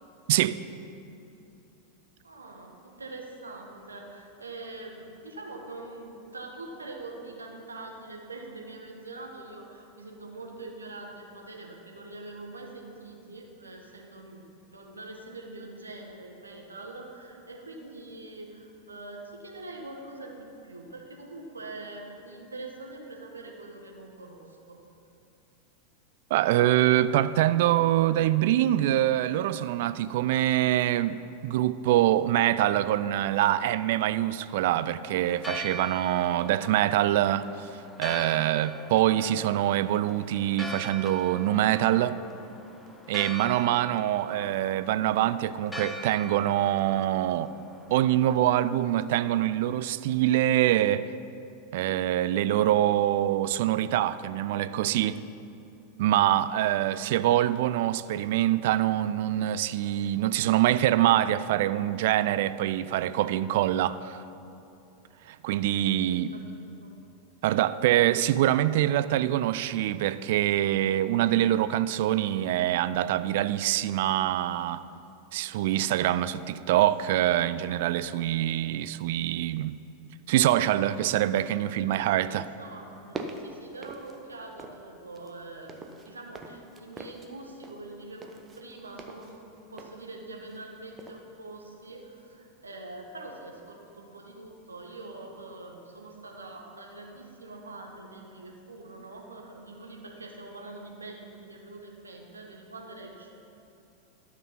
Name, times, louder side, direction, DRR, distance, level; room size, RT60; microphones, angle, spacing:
voice 1, 0.3-0.6 26.3-31.2 31.4-37.5 38.0-42.2 43.1-47.5 47.9-51.1 51.7-55.2 56.0-64.2 65.3-66.3 67.4-74.8 75.3-79.8 80.3-82.5, right 13 dB, 60° right, 0.3 m, -25 dB
voice 2, 2.2-24.8 66.0-66.5 66.8-66.9 81.8-89.4 89.7-103.3, right 2 dB, 80° right, 1.3 m, -44 dB
Church bell, 35.3-49.4, equal, 5° left, 0.8 m, -42 dB
sound 1, 82.9-84.9 85.1-90.7 91.0-91.2, right 3 dB, 25° right, 0.8 m, -43 dB
12.0 x 6.0 x 5.7 m
figure-of-eight pair, 90°, 0 cm